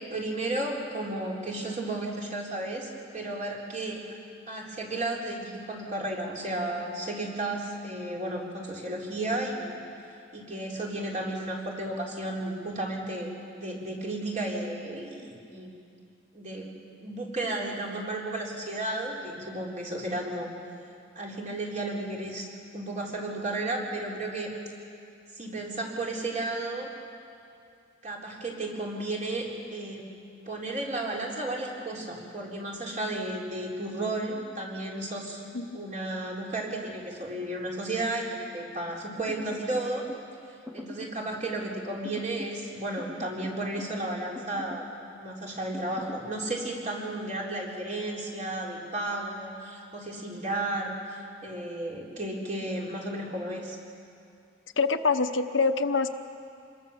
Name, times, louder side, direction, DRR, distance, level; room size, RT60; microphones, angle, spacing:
voice 1, 0.1-4.1 4.5-9.8 10.3-15.7 16.3-16.7 17.0-20.5 21.2-24.6 25.3-26.9 28.0-30.0 30.5-35.5 35.7-40.1 40.7-44.9 45.2-53.8, right 2 dB, 40° right, -2 dB, 3.9 m, -33 dB
sound 1, 39.3-40.3 40.7-41.2 42.0-42.6 43.0-44.0 44.3-44.9 45.7-46.3, left 2 dB, 5° right, 1.2 m, -42 dB
voice 2, 54.8-56.1, left 4 dB, 70° left, 7 dB, 1.0 m, -25 dB
26.5 x 22.0 x 7.2 m, 2.5 s
head